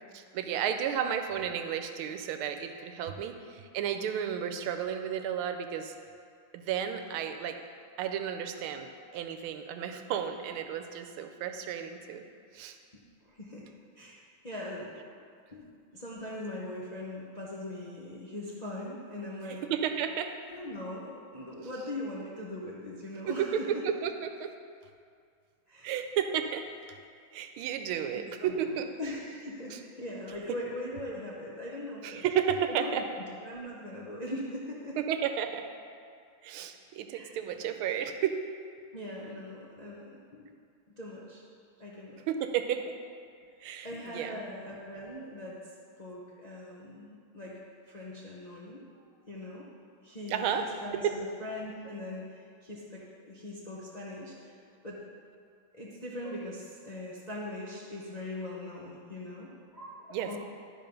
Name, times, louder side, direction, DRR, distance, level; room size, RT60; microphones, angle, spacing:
voice 1, 0.1-6.0 6.5-7.6 8.0-12.2 12.5-12.8 19.6-20.3 23.3-23.8 24.0-24.5 25.8-26.7 27.3-28.9 29.7-29.8 30.5-30.6 32.0-33.0 35.0-35.7 36.4-38.4 42.3-42.9 43.6-44.4 50.3-50.7 50.9-51.1 60.1-60.3, right 8 dB, 85° right, 7 dB, 1.5 m, -32 dB
voice 2, 13.2-13.7 14.0-14.9 15.5-19.6 20.5-23.8 25.7-25.9 28.1-32.2 32.7-35.0 37.1-37.4 38.9-40.5 41.0-41.4 41.8-42.2 43.8-45.6 46.0-47.5 47.9-49.7 50.0-50.5 50.8-55.0 55.7-60.4, left 1 dB, 65° left, -5 dB, 0.4 m, -41 dB
12.0 x 4.2 x 5.2 m, 2.3 s
omnidirectional pair, 2.3 m